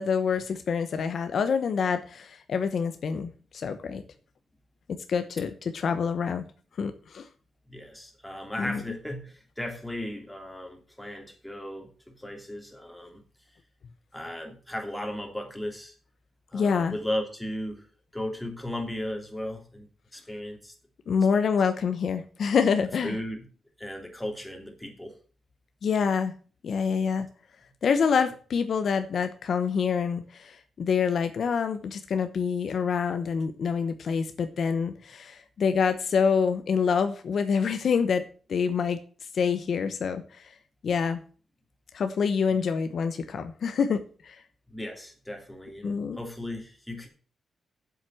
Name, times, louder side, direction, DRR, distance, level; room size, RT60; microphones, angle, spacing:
voice 1, 0.0-4.0 4.9-6.5 6.8-7.3 8.6-8.8 16.5-17.0 21.1-23.2 25.8-26.3 26.6-27.3 27.8-39.0 39.3-40.5 40.8-41.2 41.9-44.4 45.8-46.2, left 6 dB, 60° left, 9 dB, 1.0 m, -26 dB
voice 2, 7.7-13.2 14.1-15.9 16.5-17.9 18.1-19.9 20.1-20.7 21.3-21.5 23.0-23.4 23.8-25.1 42.5-42.6 44.7-47.1, left 1 dB, 5° left, 3 dB, 2.9 m, -36 dB
7.8 x 7.7 x 7.6 m, 0.40 s
wide cardioid pair, 120°, 0 cm